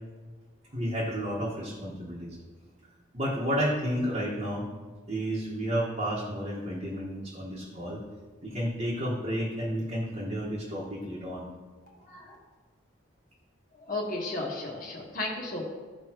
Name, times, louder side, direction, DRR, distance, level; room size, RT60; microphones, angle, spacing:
voice 1, 0.7-2.4 3.1-4.7 5.1-8.0 8.4-11.5, equal, 35° right, -7 dB, 1.5 m, -31 dB
voice 2, 11.9-12.3 13.8-15.6, left 2 dB, 45° left, -2 dB, 1.4 m, -34 dB
14.5 x 5.2 x 3.0 m, 1.4 s
head